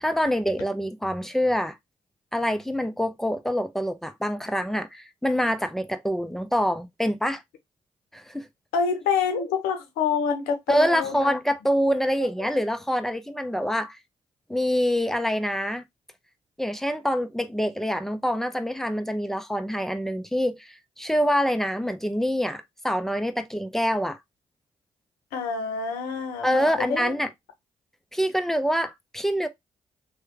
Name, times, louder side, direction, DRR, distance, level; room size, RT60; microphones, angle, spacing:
voice 1, 0.0-1.8 2.3-7.4 8.1-8.5 10.7-14.0 14.5-15.8 16.6-24.2 26.4-27.3 28.1-29.5, equal, ahead, 0.6 m, -25 dB
voice 2, 8.7-11.3 12.2-12.5 25.3-27.1, left 5 dB, 90° left, 0.7 m, -27 dB
3.0 x 2.3 x 3.3 m
hypercardioid pair, 45°, 15 cm